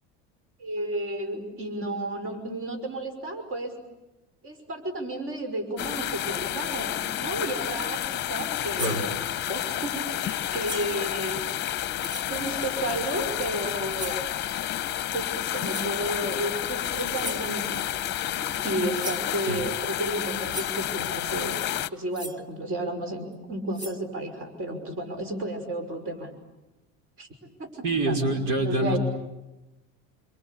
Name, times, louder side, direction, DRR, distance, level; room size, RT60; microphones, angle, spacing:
voice 1, 0.6-3.8 4.4-9.1 9.5-11.4 12.2-14.2 15.0-17.8 18.3-21.6 21.9-26.3 27.2-27.3 27.6-27.7 28.1-29.0, right 1 dB, 40° right, 6 dB, 5.8 m, -32 dB
sound 1, 5.8-21.9, left 12 dB, 30° left, 1.0 m, -30 dB
sound 2, 8.7-9.1 10.6-11.0 12.0-12.3 14.0-14.3 15.7-16.0 17.2-17.5 18.6-18.7 19.0-19.3 20.2-20.3 20.5-20.8 22.1-22.4 23.3-23.4 23.7-24.0, equal, 10° right, 1.6 m, -38 dB
voice 2, 27.8-29.0, right 2 dB, 65° right, 4 dB, 5.5 m, -25 dB
27.5 x 25.5 x 8.5 m, 1.0 s
cardioid pair, 145°, 34 cm